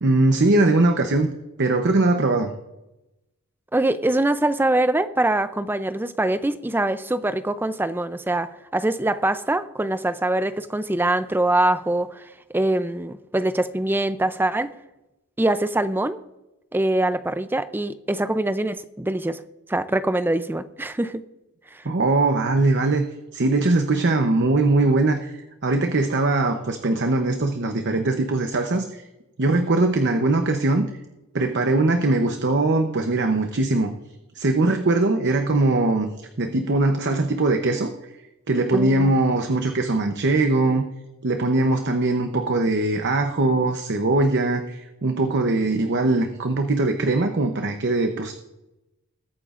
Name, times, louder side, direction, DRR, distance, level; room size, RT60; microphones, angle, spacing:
voice 1, 0.0-1.3 1.6-2.5 21.8-23.0 23.3-29.0 29.4-30.9 31.3-33.9 34.4-36.1 36.4-37.9 38.5-40.8 41.2-48.3, right 2 dB, 50° right, 6 dB, 0.8 m, -21 dB
voice 2, 3.7-12.3 12.5-14.7 15.4-16.2 16.7-19.4 19.7-21.2 21.7-21.8 38.7-39.1, right 1 dB, 10° right, 12 dB, 0.5 m, -23 dB
21.0 x 9.3 x 2.5 m, 0.97 s
head